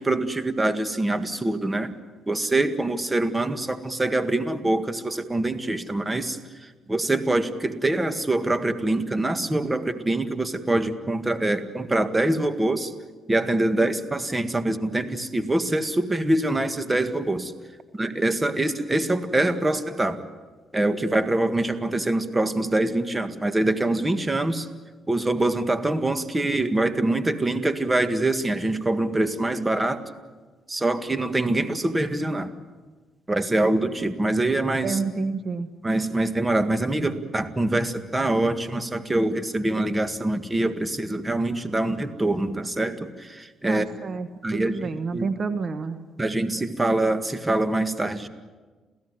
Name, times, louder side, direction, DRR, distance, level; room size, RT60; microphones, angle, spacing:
voice 1, 0.0-1.9 2.3-13.0 13.3-17.5 17.9-20.3 20.7-24.7 25.1-30.0 30.7-32.5 33.3-35.0 35.8-43.9 44.4-45.3 46.2-48.3, right 2 dB, 15° right, 10 dB, 1.8 m, -24 dB
voice 2, 34.8-35.7 43.7-46.0, right 4 dB, 45° right, 10 dB, 1.3 m, -29 dB
28.5 x 16.5 x 9.8 m, 1.3 s
cardioid pair, 90°, 0 cm